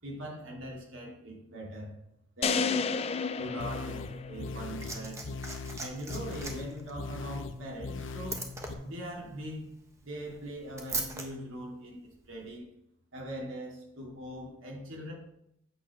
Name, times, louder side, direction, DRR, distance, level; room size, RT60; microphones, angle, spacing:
voice 1, 0.0-2.0 2.4-2.9 3.4-5.2 5.8-8.4 8.8-9.7 10.0-12.7 13.1-15.1, equal, 80° right, -2 dB, 2.9 m, -41 dB
sound 1, 2.4-4.7, left 5 dB, 30° left, 0.4 m, -31 dB
sound 2, 3.6-8.7, left 3 dB, 70° left, 0.8 m, -40 dB
Liquid, 4.3-11.3 12.3-12.5, right 3 dB, 15° right, 1.1 m, -41 dB
8.5 x 5.2 x 6.4 m, 0.79 s
head